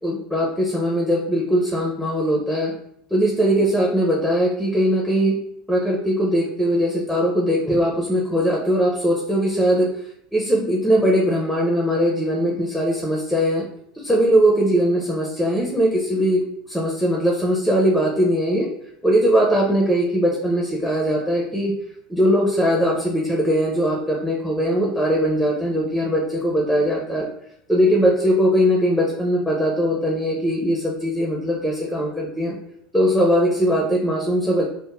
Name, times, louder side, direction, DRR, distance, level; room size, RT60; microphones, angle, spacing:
voice 1, 0.0-2.7 3.1-5.4 5.7-9.9 10.3-13.6 13.9-18.7 19.0-21.7 22.1-27.3 27.7-32.5 32.9-34.7, equal, ahead, -2 dB, 0.7 m, -20 dB
5.1 x 2.1 x 2.5 m, 0.73 s
hypercardioid pair, 80°, 0 cm